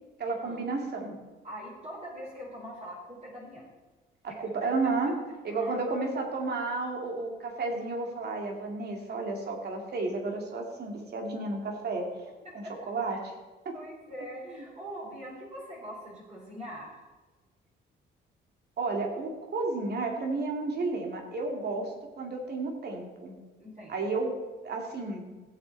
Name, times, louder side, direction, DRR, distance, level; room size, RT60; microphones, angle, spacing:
voice 1, 0.2-1.2 4.2-5.1 5.4-12.1 12.5-13.3 13.6-13.7 18.8-21.9 22.2-23.4 23.9-24.3 24.6-25.3, right 3 dB, 55° right, 2 dB, 2.6 m, -32 dB
voice 2, 1.4-3.6 4.3-4.4 5.5-5.7 12.6-12.7 13.1-13.2 13.7-17.0 21.8-21.9 23.6-24.1, equal, 35° right, -5 dB, 4.2 m, -43 dB
16.0 x 7.8 x 4.1 m, 1.3 s
cardioid pair, 90°, 20 cm